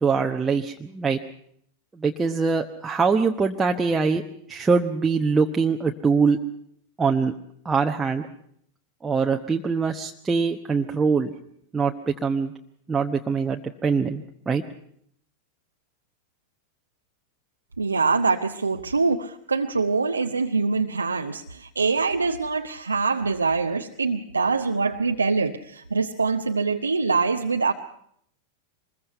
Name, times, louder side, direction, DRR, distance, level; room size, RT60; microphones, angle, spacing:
voice 1, 0.0-1.2 1.9-4.2 4.5-6.4 7.0-7.3 7.6-8.3 9.0-11.3 11.7-12.5 12.9-14.6, right 5 dB, 15° right, 2 dB, 1.0 m, -23 dB
voice 2, 17.8-27.7, right 4 dB, 80° right, 5 dB, 0.8 m, -24 dB
25.0 x 21.5 x 5.6 m, 0.69 s
figure-of-eight pair, 90°, 0 cm